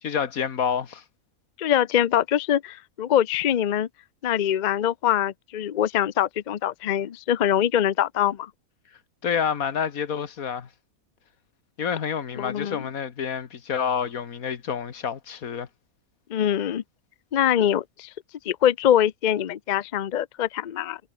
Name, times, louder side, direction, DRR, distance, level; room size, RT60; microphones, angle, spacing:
voice 1, 0.0-1.0 9.2-10.7 11.8-15.7, left 7 dB, 80° left, 1.8 m, -28 dB
voice 2, 1.6-3.9 4.2-8.5 12.4-12.8 16.3-16.8 17.3-18.1 18.5-21.0, left 10 dB, 55° left, 0.5 m, -23 dB
omnidirectional pair, 1.5 m